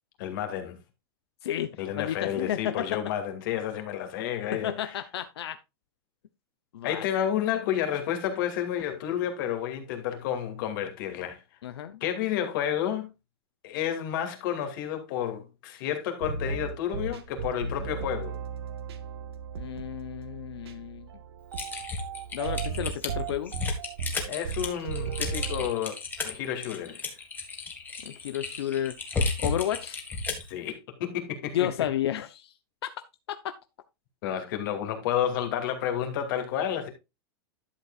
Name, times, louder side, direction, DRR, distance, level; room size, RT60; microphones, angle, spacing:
voice 1, 0.2-0.8 1.8-5.0 6.8-11.4 12.0-13.1 13.6-18.4 24.3-26.0 26.2-27.1 30.5-31.9 34.2-36.9, left 10 dB, 55° left, 2.4 m, -30 dB
voice 2, 1.4-2.7 4.6-5.6 6.7-7.0 11.6-12.0 19.6-21.1 22.3-23.5 28.0-29.0 29.4-30.0 31.5-32.5, left 11 dB, 85° left, 0.8 m, -32 dB
sound 1, 16.2-25.7, right 6 dB, 90° right, 1.4 m, -36 dB
Typing, 21.5-30.5, left 4 dB, 15° left, 1.7 m, -33 dB
11.5 x 7.3 x 2.4 m
supercardioid pair, 155°, 13 cm